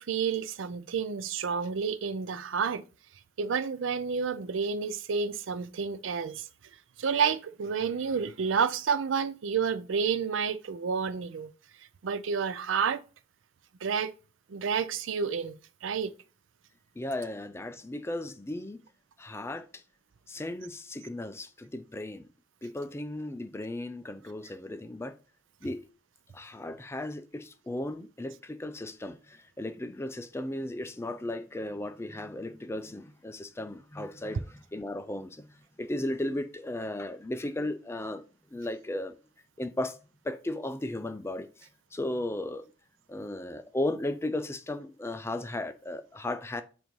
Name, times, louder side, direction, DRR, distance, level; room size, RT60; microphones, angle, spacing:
voice 1, 0.0-2.8 3.4-6.4 7.0-11.5 12.0-13.0 13.8-14.1 14.5-16.1, right 6 dB, 85° right, 0.5 m, -30 dB
voice 2, 17.0-18.8 19.2-19.7 20.3-22.3 22.6-25.1 25.6-25.8 26.3-35.5 35.8-38.2 38.5-39.1 39.6-40.0 40.2-41.5 41.9-42.6 43.1-46.6, left 1 dB, 15° left, 0.4 m, -35 dB
7.7 x 2.7 x 5.3 m
head